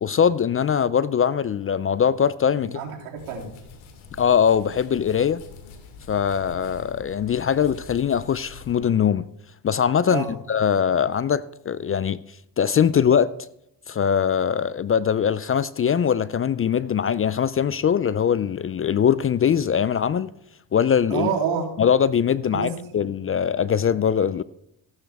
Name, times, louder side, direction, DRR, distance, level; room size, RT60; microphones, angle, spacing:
voice 1, 0.0-2.8 4.2-5.4 6.1-9.2 9.6-12.2 12.6-13.3 13.9-20.3 20.7-21.3 21.8-24.4, left 8 dB, 30° left, 0.4 m, -21 dB
voice 2, 2.6-3.5 10.0-10.3 21.1-21.7 22.5-23.0, right 6 dB, 85° right, 3.2 m, -28 dB
sound 1, 3.2-8.8, left 4 dB, 80° left, 2.3 m, -44 dB
15.0 x 12.0 x 3.5 m
supercardioid pair, 80°, 48 cm